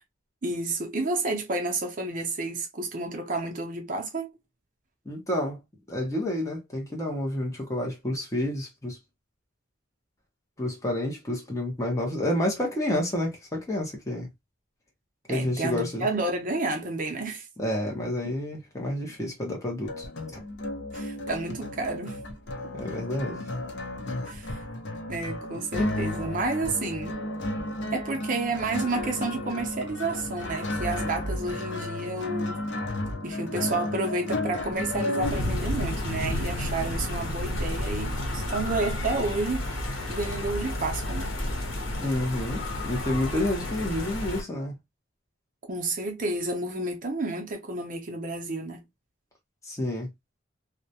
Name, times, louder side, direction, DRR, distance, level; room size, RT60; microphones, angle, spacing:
voice 1, 0.4-4.3 15.3-17.5 20.9-22.2 22.6-22.7 24.3-24.6 25.1-27.2 27.9-32.6 33.2-39.8 40.1-41.3 45.7-48.9, right 2 dB, 40° right, 0.5 m, -30 dB
voice 2, 5.1-5.6 5.9-9.0 10.6-14.3 15.3-16.1 17.6-20.4 22.7-23.4 42.0-44.7 49.6-50.1, left 1 dB, 15° left, 0.7 m, -29 dB
sound 1, 19.9-35.3, left 1 dB, 65° left, 0.6 m, -33 dB
sound 2, 35.2-44.4, left 1 dB, 85° left, 0.9 m, -31 dB
2.3 x 2.1 x 2.6 m
head